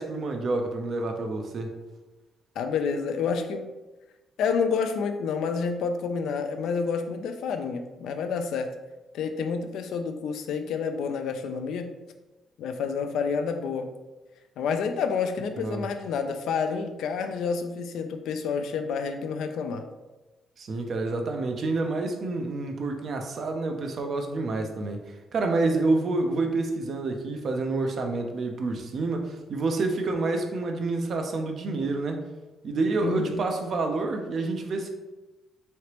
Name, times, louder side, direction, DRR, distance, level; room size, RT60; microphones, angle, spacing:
voice 1, 0.0-1.7 15.6-15.9 20.6-25.0 25.3-32.2 32.6-34.9, right 3 dB, 55° right, 4 dB, 0.5 m, -28 dB
voice 2, 2.6-3.7 4.4-8.8 9.1-11.9 12.6-13.9 14.6-19.8 33.0-33.4, left 5 dB, 80° left, 6 dB, 0.3 m, -29 dB
3.2 x 2.8 x 2.9 m, 1.1 s
cardioid pair, 90°, 0 cm